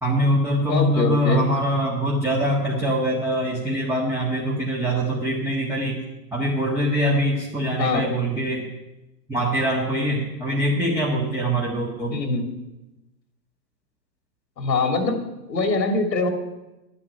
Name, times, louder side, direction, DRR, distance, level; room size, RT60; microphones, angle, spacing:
voice 1, 0.0-6.0 6.3-8.6 9.3-12.2, right 1 dB, 5° right, -4 dB, 1.7 m, -23 dB
voice 2, 0.7-1.5 7.8-8.1 12.1-12.5 14.6-15.2 15.5-16.3, left 3 dB, 90° left, 6 dB, 2.6 m, -23 dB
11.0 x 8.7 x 9.0 m, 1.0 s
hypercardioid pair, 140°, 49 cm